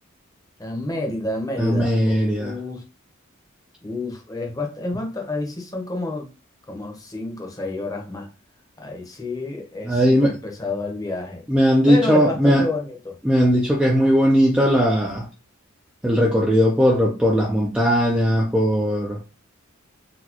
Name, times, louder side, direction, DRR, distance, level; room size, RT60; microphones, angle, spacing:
voice 1, 0.6-2.8 3.8-6.3 6.7-8.3 8.8-11.4 11.9-13.2, left 2 dB, 15° left, 0.8 m, -29 dB
voice 2, 1.6-2.5 9.9-10.3 11.5-12.6 13.2-15.3 16.0-19.2, equal, 5° right, 0.4 m, -18 dB
4.1 x 2.2 x 2.8 m
head